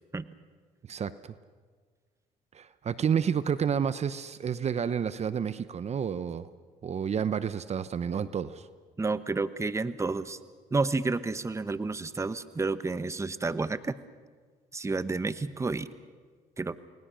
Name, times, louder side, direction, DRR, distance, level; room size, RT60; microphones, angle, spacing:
voice 1, 0.9-1.3 2.5-6.5 6.8-8.7, right 7 dB, 45° right, 14 dB, 0.9 m, -30 dB
voice 2, 9.0-10.4 10.7-14.0 14.7-15.9 16.6-16.8, right 3 dB, 20° right, 13 dB, 1.0 m, -30 dB
29.5 x 19.5 x 6.3 m, 1.5 s
cardioid pair, 85°, 16 cm